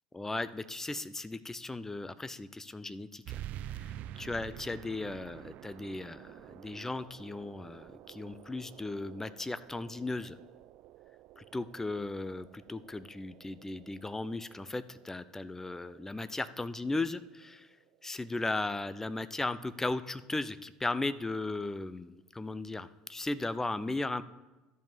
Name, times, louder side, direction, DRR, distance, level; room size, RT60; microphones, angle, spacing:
voice 1, 0.1-3.4 4.2-6.3 6.6-10.3 11.4-17.7 18.0-24.2, left 2 dB, 10° left, 15 dB, 0.6 m, -36 dB
sound 1, 3.2-18.3, right 12 dB, 55° right, 0.3 m, -49 dB
12.0 x 5.4 x 7.4 m, 1.1 s
hypercardioid pair, 70°, 3 cm